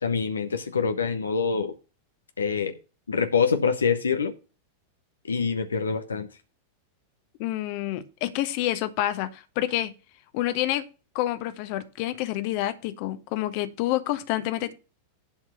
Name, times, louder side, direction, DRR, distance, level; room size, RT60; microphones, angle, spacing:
voice 1, 0.0-1.7 2.4-2.7 3.1-4.3 5.2-6.3, left 5 dB, 75° left, 1.0 m, -25 dB
voice 2, 7.4-9.9 10.3-10.8 11.1-14.7, left 14 dB, 45° left, 1.3 m, -28 dB
11.5 x 4.7 x 5.8 m
figure-of-eight pair, 90°, 0 cm